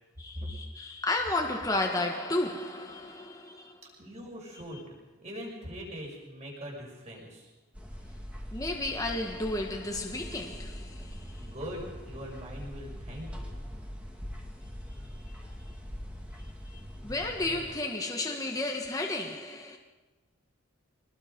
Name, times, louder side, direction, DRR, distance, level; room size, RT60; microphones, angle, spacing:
voice 1, 0.2-3.8 8.5-11.5 14.9-15.5 16.7-19.8, left 2 dB, 15° left, 1.5 m, -33 dB
voice 2, 4.0-7.5 11.4-13.3, equal, 30° right, 6.5 m, -41 dB
sound 1, 7.7-17.7, equal, 5° right, 2.4 m, -42 dB
25.0 x 20.5 x 5.3 m
head